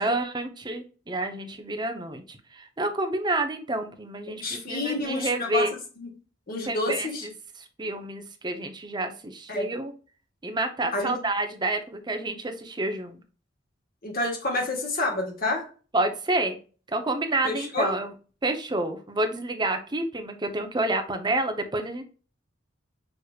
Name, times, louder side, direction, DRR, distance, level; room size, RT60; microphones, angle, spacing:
voice 1, 0.0-5.7 6.7-7.3 7.8-9.9 10.4-13.2 15.9-16.6 16.9-18.1 18.4-22.0, right 2 dB, 20° right, 6 dB, 0.7 m, -29 dB
voice 2, 4.4-5.6 6.0-6.1 6.5-7.2 9.5-9.7 10.9-11.1 14.0-15.7 17.4-17.9, left 2 dB, 50° left, 1 dB, 1.5 m, -29 dB
6.5 x 3.0 x 2.3 m, 0.36 s
head